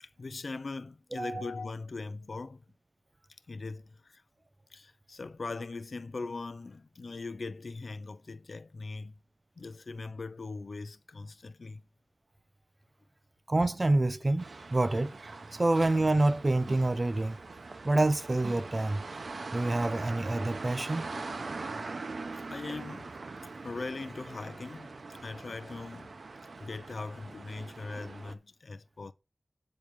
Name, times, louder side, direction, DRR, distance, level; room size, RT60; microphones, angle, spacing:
voice 1, 0.0-2.6 3.5-4.2 4.7-9.1 9.6-11.8 22.5-23.1 23.6-26.1 26.6-29.1, left 3 dB, 75° left, 0.5 m, -40 dB
voice 2, 1.2-1.5 13.5-15.2 15.5-17.4 17.8-19.0 19.5-21.1, right 2 dB, 35° right, 0.7 m, -27 dB
sound 1, 14.4-28.3, right 3 dB, 80° right, 0.9 m, -42 dB
8.7 x 5.2 x 4.7 m
wide cardioid pair, 80°, 0 cm